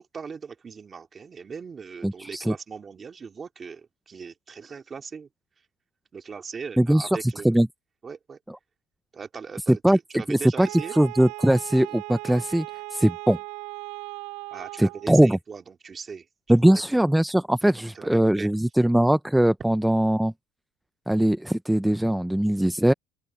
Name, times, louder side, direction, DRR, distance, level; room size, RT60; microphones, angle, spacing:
voice 1, 0.0-5.3 6.1-7.6 8.0-8.4 9.1-11.0 14.5-16.2 17.0-17.1 17.9-18.5, right 5 dB, 25° right, 3.2 m, -39 dB
voice 2, 2.0-2.5 6.8-7.7 9.7-10.0 10.3-12.7 12.9-13.4 14.8-15.4 16.5-20.3 21.1-22.9, right 1 dB, 5° right, 0.6 m, -21 dB
Wind instrument woodwind instrument, 10.6-15.1, right 25 dB, 85° right, 5.0 m, -38 dB
open air
cardioid pair, 140°, 0 cm